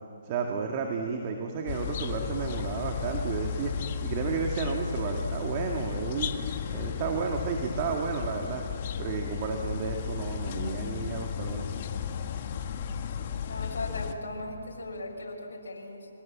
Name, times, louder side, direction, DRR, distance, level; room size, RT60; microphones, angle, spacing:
voice 1, 0.2-3.7 4.0-6.4 6.7-8.6 9.0-11.8, right 5 dB, 35° right, 2 dB, 2.0 m, -32 dB
sound 1, 1.7-14.1, left 7 dB, 40° left, 1.6 m, -34 dB
voice 2, 13.4-16.1, left 2 dB, 80° left, -1 dB, 5.9 m, -38 dB
27.5 x 24.5 x 7.4 m, 2.7 s
hypercardioid pair, 150°, 0 cm